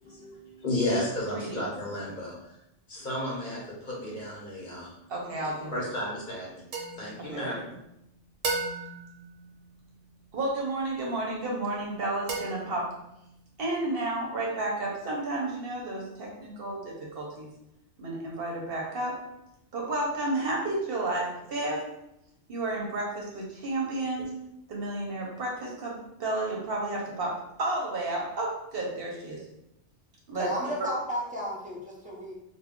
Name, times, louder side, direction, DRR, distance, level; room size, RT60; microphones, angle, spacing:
voice 1, 0.0-2.6 2.9-4.9 5.7-6.5 6.9-7.5, left 1 dB, 45° left, -5 dB, 0.8 m, -33 dB
voice 2, 1.3-1.6 5.1-5.8 7.2-7.6 10.3-12.9 13.6-17.5 18.0-19.2 19.7-21.9 22.5-24.3 24.7-29.4 30.3-30.5 30.8-30.9, right 2 dB, 55° right, -2 dB, 0.8 m, -32 dB
sound 1, 6.7-7.9 8.4-10.2 12.3-13.3, right 3 dB, 80° right, 0.9 m, -36 dB
voice 3, 30.4-32.3, equal, 10° right, -6 dB, 0.4 m, -33 dB
2.2 x 2.2 x 3.5 m, 0.84 s
omnidirectional pair, 1.3 m